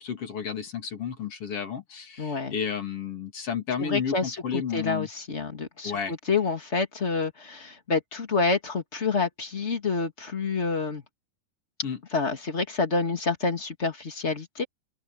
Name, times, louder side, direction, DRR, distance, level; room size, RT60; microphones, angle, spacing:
voice 1, 0.0-5.1 5.8-6.1 11.8-12.0, left 7 dB, 45° left, 3.4 m, -32 dB
voice 2, 2.2-2.5 3.8-11.0 12.1-14.6, left 4 dB, 25° left, 1.8 m, -28 dB
open air
omnidirectional pair, 4.1 m